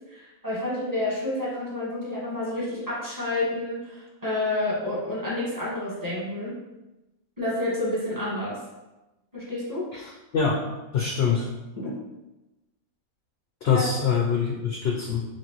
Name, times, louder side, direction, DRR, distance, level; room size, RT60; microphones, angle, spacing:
voice 1, 0.1-6.6 7.4-8.6 9.3-9.9 11.8-11.9 13.7-13.9, left 1 dB, 15° right, -8 dB, 1.3 m, -29 dB
voice 2, 9.9-10.6 10.9-11.5 13.6-15.3, left 6 dB, 65° left, 0 dB, 0.6 m, -24 dB
5.9 x 2.6 x 3.0 m, 1.0 s
omnidirectional pair, 1.5 m